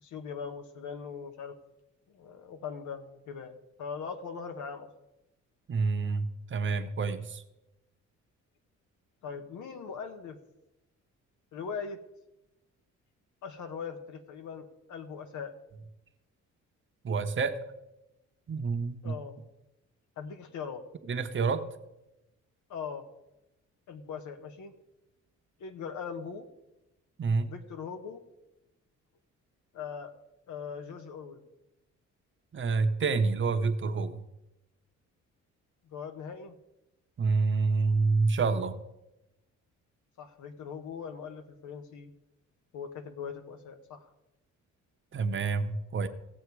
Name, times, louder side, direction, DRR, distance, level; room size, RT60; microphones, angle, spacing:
voice 1, 0.0-1.5 2.1-4.9 9.2-10.4 11.5-12.0 13.4-15.5 19.0-19.4 20.2-20.8 22.7-23.0 23.9-24.7 25.6-26.5 27.5-28.2 29.7-30.2 30.5-31.4 35.8-36.6 40.2-42.1 42.7-44.1, left 6 dB, 75° left, 7 dB, 1.5 m, -40 dB
voice 2, 5.7-7.4 17.0-17.6 18.5-19.1 21.1-21.6 27.2-27.5 32.5-34.2 37.2-38.8 45.1-46.1, right 4 dB, 40° right, 8 dB, 1.1 m, -28 dB
17.0 x 7.2 x 4.8 m, 0.94 s
cardioid pair, 90°, 30 cm